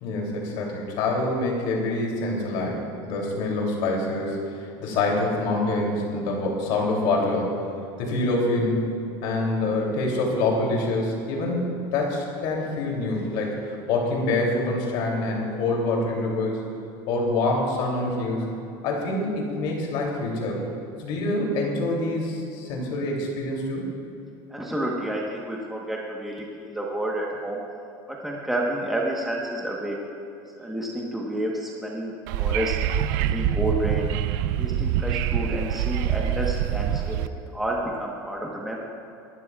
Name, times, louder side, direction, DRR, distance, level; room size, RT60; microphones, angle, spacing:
voice 1, 0.0-7.6 8.0-8.8 9.2-16.6 17.1-18.4 18.8-20.6 21.0-23.8, left 2 dB, 60° left, -1 dB, 3.0 m, -26 dB
voice 2, 24.5-27.6 28.1-30.0 30.6-32.1 32.4-32.8 33.2-34.1 34.6-37.2 37.5-38.8, right 1 dB, 5° right, -3 dB, 1.2 m, -30 dB
Wind / Subway metro underground, 32.3-37.3, right 10 dB, 65° right, 0.5 m, -25 dB
24.0 x 12.0 x 2.4 m, 2.6 s
cardioid pair, 160°, 10 cm